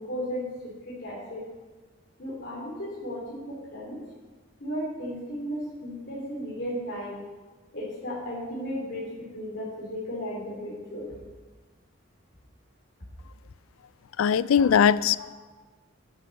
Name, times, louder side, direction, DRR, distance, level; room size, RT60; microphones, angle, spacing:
voice 1, 0.0-1.4 2.2-4.0 4.6-7.2 7.7-11.1, equal, 55° left, -6 dB, 3.1 m, -35 dB
voice 2, 14.2-15.3, left 7 dB, 85° left, 18 dB, 0.4 m, -21 dB
13.0 x 10.0 x 4.2 m, 1.3 s
head